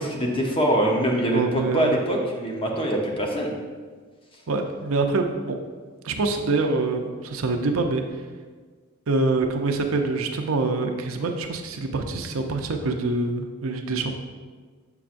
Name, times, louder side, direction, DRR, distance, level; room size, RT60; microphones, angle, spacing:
voice 1, 0.0-3.6, right 1 dB, 25° left, 0 dB, 0.8 m, -23 dB
voice 2, 1.3-2.0 4.5-5.6 6.0-8.0 9.1-14.1, right 3 dB, 70° right, 4 dB, 0.6 m, -25 dB
6.8 x 5.8 x 2.5 m, 1.5 s
head